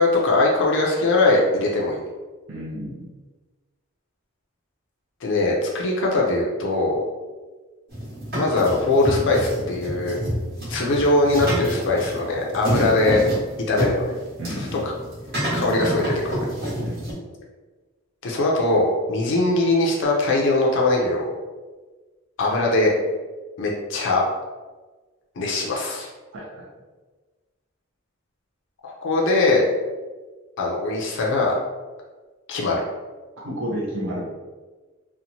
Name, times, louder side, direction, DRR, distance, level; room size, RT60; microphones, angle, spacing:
voice 1, 0.0-2.0 5.2-7.0 8.4-10.2 10.7-13.2 13.7-14.0 14.6-14.7 15.5-16.3 18.2-21.4 22.4-22.9 23.6-24.2 25.4-26.1 28.8-29.6 30.6-31.5 32.5-32.8, left 2 dB, 60° left, -2 dB, 0.4 m, -21 dB
voice 2, 2.5-3.1 12.7-12.9 14.4-14.8 16.8-17.0 26.3-26.7 33.4-34.2, equal, 65° right, -6 dB, 0.6 m, -31 dB
sound 1, 7.9-17.1, equal, 50° right, 1.2 m, -28 dB
2.9 x 2.1 x 2.6 m, 1.3 s
head